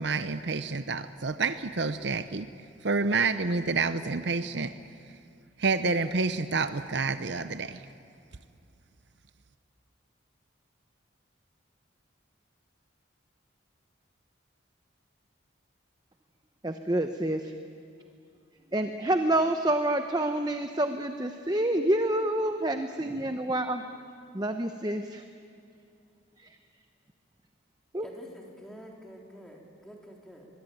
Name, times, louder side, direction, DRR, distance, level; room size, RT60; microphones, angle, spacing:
voice 1, 0.0-2.5 2.8-4.7 5.6-7.8, right 4 dB, 60° right, 12 dB, 0.7 m, -28 dB
voice 2, 16.6-17.4 18.7-23.8 24.3-25.2 27.9-28.1, right 1 dB, 20° right, 7 dB, 0.8 m, -27 dB
voice 3, 28.0-30.5, equal, 5° left, -1 dB, 3.4 m, -48 dB
24.0 x 22.0 x 9.3 m, 2.5 s
head